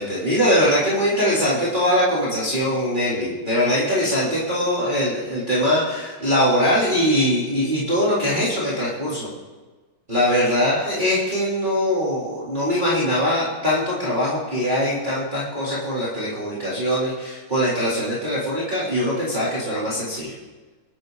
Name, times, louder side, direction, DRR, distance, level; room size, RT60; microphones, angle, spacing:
voice 1, 0.0-9.3 10.1-20.3, equal, 20° right, -9 dB, 3.8 m, -22 dB
26.5 x 12.0 x 4.1 m, 1.3 s
omnidirectional pair, 2.2 m